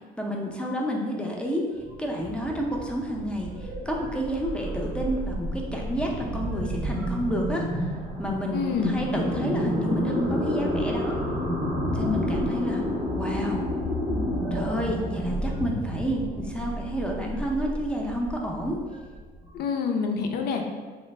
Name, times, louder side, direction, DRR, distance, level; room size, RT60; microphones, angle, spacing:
voice 1, 0.2-1.7 2.0-7.9 8.2-11.2 11.9-12.8 13.1-13.7 14.5-18.8, equal, 5° left, -1 dB, 0.4 m, -30 dB
sound 1, 1.7-19.5, equal, 80° right, 0.8 m, -30 dB
voice 2, 8.5-9.0 19.5-20.7, left 5 dB, 70° left, 4 dB, 0.4 m, -27 dB
3.2 x 2.0 x 3.1 m, 1.4 s
cardioid pair, 110°, 17 cm